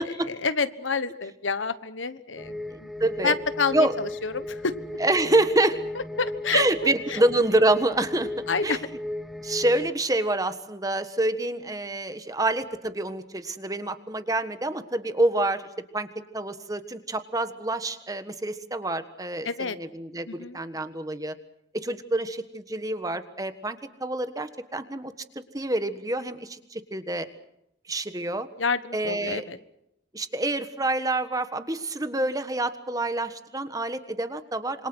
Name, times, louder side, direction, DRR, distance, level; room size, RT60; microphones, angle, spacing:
voice 1, 0.3-2.9 3.2-4.7 6.2-6.6 7.1-7.2 8.5-8.8 19.4-19.8 20.3-20.6 28.6-29.6, left 5 dB, 85° left, 13 dB, 1.3 m, -28 dB
sound 1, 2.4-9.9, left 1 dB, ahead, 1.2 m, -36 dB
voice 2, 2.7-3.4 3.7-3.9 5.0-5.8 6.5-8.3 8.6-8.8 9.4-15.7 15.9-16.1 16.3-21.3 21.7-27.3 27.9-28.5 28.9-29.4 30.1-34.9, right 2 dB, 20° right, 10 dB, 1.4 m, -27 dB
27.0 x 25.0 x 6.2 m, 0.81 s
head